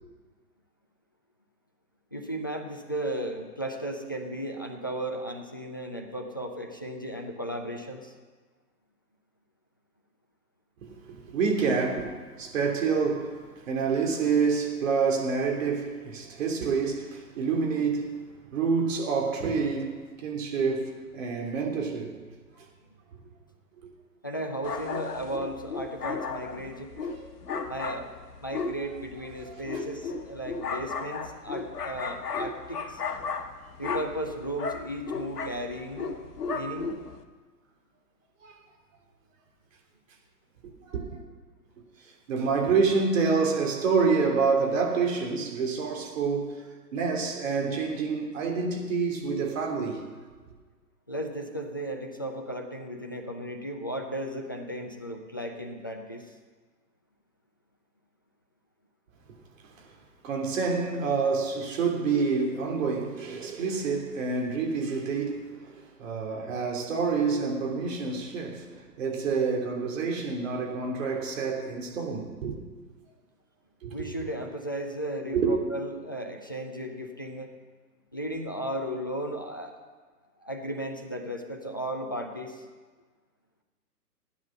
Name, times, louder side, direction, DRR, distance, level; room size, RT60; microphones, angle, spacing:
voice 1, 2.1-8.1 24.2-26.9 27.7-28.1 28.4-33.0 33.8-36.1 36.5-36.9 51.1-56.3 73.9-77.5 78.1-79.8 80.4-82.6, right 1 dB, 15° left, 0.3 m, -35 dB
voice 2, 10.8-18.2 18.5-19.9 20.2-22.2 23.8-23.9 27.1-27.3 29.5-29.6 38.4-38.5 40.8-41.2 42.3-46.6 46.9-50.0 60.2-72.6 73.8-74.1 75.3-75.5, right 5 dB, 50° right, 3.3 m, -27 dB
sound 1, 24.6-37.2, left 4 dB, 70° left, 1.4 m, -35 dB
16.0 x 9.7 x 6.6 m
figure-of-eight pair, 125°, 49 cm